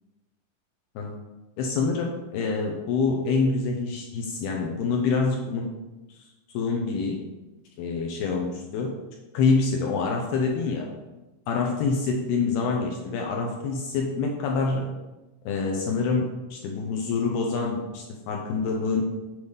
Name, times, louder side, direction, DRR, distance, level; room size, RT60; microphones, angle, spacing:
voice 1, 1.6-5.7 6.5-7.2 7.8-8.9 9.3-10.9 11.5-14.9 15.5-19.0, left 4 dB, 75° left, 1 dB, 2.4 m, -26 dB
8.0 x 5.1 x 5.3 m, 1.1 s
omnidirectional pair, 5.1 m